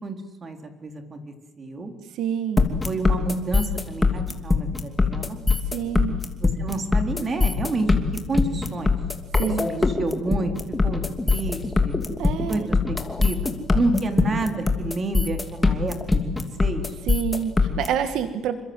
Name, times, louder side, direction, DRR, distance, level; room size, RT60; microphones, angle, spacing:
voice 1, 0.0-1.9 2.8-5.4 6.4-9.0 9.6-12.0 12.5-16.9, right 3 dB, 30° right, 6 dB, 3.8 m, -30 dB
voice 2, 2.1-2.7 5.7-6.2 9.4-9.7 12.2-12.7 17.1-18.6, right 8 dB, 80° right, 9 dB, 2.0 m, -27 dB
sound 1, 2.6-17.9, left 3 dB, 15° left, 2.8 m, -21 dB
28.5 x 25.0 x 8.1 m, 1.1 s
cardioid pair, 145°, 0 cm